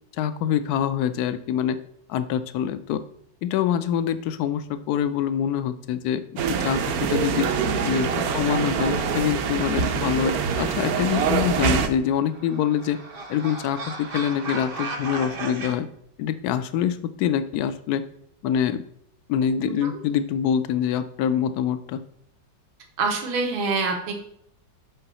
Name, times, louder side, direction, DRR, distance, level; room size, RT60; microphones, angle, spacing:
voice 1, 0.1-1.8 2.1-3.0 3.4-7.5 7.8-8.1 8.3-13.0 13.3-15.9 16.2-18.0 18.4-18.8 19.3-22.0, left 9 dB, 80° left, 12 dB, 0.8 m, -25 dB
sound 1, 6.4-11.9, right 6 dB, 65° right, 1.0 m, -24 dB
voice 2, 7.6-8.0 19.8-19.9 23.0-24.2, right 4 dB, 85° right, 3 dB, 2.1 m, -26 dB
sound 2, 11.9-15.7, right 3 dB, 45° right, 0.8 m, -35 dB
5.9 x 5.5 x 5.4 m, 0.70 s
omnidirectional pair, 2.1 m